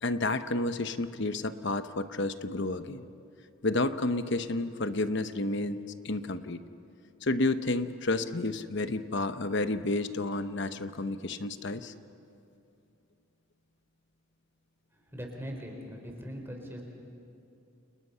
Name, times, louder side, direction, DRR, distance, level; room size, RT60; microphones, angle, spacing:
voice 1, 0.0-3.0 3.6-6.6 7.2-11.9, left 2 dB, 55° left, 10 dB, 1.0 m, -31 dB
voice 2, 15.1-16.8, equal, 10° right, 1 dB, 4.1 m, -40 dB
29.5 x 29.0 x 5.7 m, 2.6 s
head